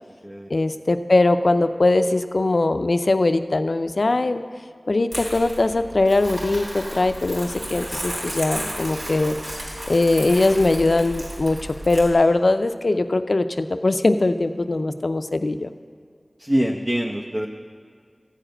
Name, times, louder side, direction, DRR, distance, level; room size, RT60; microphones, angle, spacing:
voice 1, 0.5-4.4 4.9-9.4 9.9-15.7, left 2 dB, 75° left, 10 dB, 0.5 m, -21 dB
Crumpling crinkling, 5.1-12.1, equal, 85° right, 3.7 m, -33 dB
voice 2, 16.4-17.5, equal, 30° right, 0 dB, 0.8 m, -24 dB
14.5 x 4.9 x 8.8 m, 2.1 s
wide cardioid pair, 40°, 0 cm